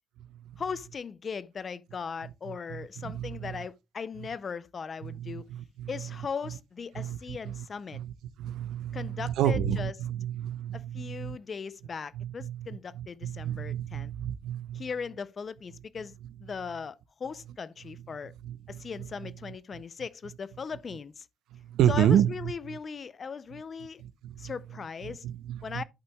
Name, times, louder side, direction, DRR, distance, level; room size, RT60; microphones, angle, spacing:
voice 1, 0.6-5.5 5.9-8.0 8.9-9.9 10.7-14.1 14.7-16.1 16.4-18.3 18.7-21.3 21.9-24.0 24.4-25.3 25.6-25.8, left 5 dB, 30° left, 0.4 m, -38 dB
voice 2, 2.5-3.6 5.0-6.1 7.0-7.6 7.9-8.1 8.4-11.4 12.1-12.7 12.9-14.9 18.4-19.3 19.7-19.8 21.5-22.8 24.0-24.5 25.0-25.8, right 10 dB, 90° right, 0.7 m, -31 dB
11.0 x 5.8 x 2.2 m
cardioid pair, 165°, 0 cm